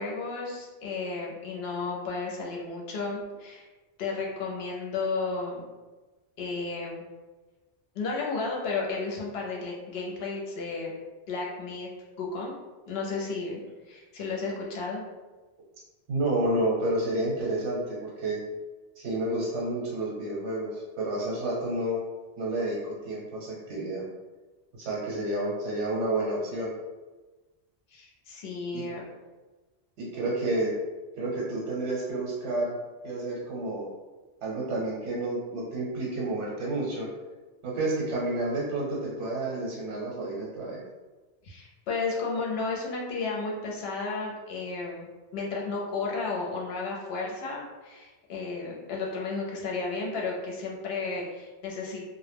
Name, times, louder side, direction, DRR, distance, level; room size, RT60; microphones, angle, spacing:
voice 1, 0.0-3.7 4.0-5.6 6.4-7.0 7.9-10.9 11.3-11.9 12.2-12.5 12.9-13.6 13.8-15.0 27.9-29.0 41.4-45.1 45.3-52.1, left 4 dB, 70° left, -2 dB, 0.8 m, -33 dB
voice 2, 16.1-18.4 19.0-22.0 22.4-24.1 24.7-26.7 28.7-28.8 30.0-30.7 31.1-32.8 33.0-33.8 34.4-37.1 37.6-40.8, right 2 dB, 80° right, -5 dB, 0.9 m, -30 dB
2.1 x 2.1 x 3.3 m, 1.2 s
omnidirectional pair, 1.2 m